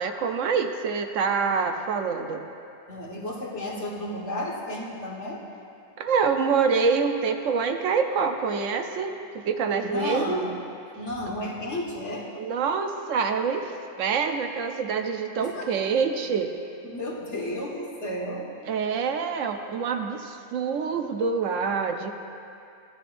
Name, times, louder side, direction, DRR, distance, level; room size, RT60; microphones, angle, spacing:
voice 1, 0.0-2.4 6.0-10.4 12.3-13.7 14.0-16.5 18.7-22.1, right 5 dB, 75° right, 6 dB, 1.0 m, -26 dB
voice 2, 2.9-5.4 9.8-10.6 11.0-12.3 15.4-15.9 16.8-18.5, left 1 dB, 60° left, -4 dB, 1.8 m, -33 dB
15.5 x 11.0 x 2.5 m, 2.6 s
omnidirectional pair, 1.4 m